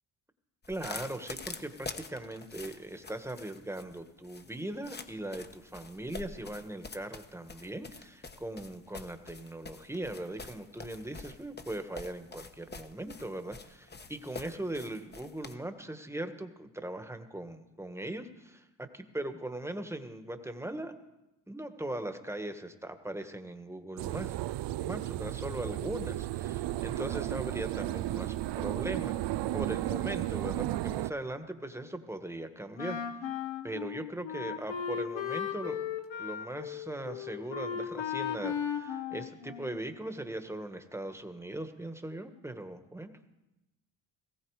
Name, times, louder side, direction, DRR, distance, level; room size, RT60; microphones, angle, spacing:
sound 1, 0.6-15.5, left 3 dB, 25° left, 1.2 m, -46 dB
voice 1, 0.7-20.9 21.5-24.4 24.8-33.0 33.6-35.8 36.2-43.1, right 1 dB, 5° right, 8 dB, 1.5 m, -39 dB
sound 2, 24.0-31.1, right 14 dB, 65° right, 0.6 m, -34 dB
Wind instrument woodwind instrument, 32.8-40.0, left 8 dB, 80° left, 1.6 m, -36 dB
19.0 x 16.0 x 4.9 m, 0.97 s
cardioid pair, 95°, 44 cm